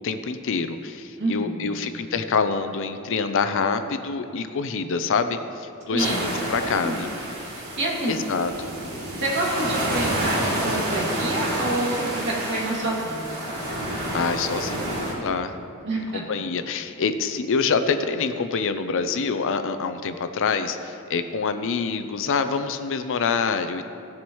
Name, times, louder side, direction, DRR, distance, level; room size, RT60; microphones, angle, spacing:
voice 1, 0.0-7.1 8.1-8.7 13.8-15.5 16.1-23.8, left 5 dB, 60° left, 9 dB, 0.5 m, -26 dB
voice 2, 1.2-1.7 5.9-7.1 7.5-8.1 9.2-13.4 15.8-16.2, right 1 dB, 55° right, -4 dB, 2.4 m, -28 dB
sound 1, 6.0-15.1, right 1 dB, 90° right, 2.7 m, -29 dB
17.0 x 7.3 x 3.1 m, 2.6 s
head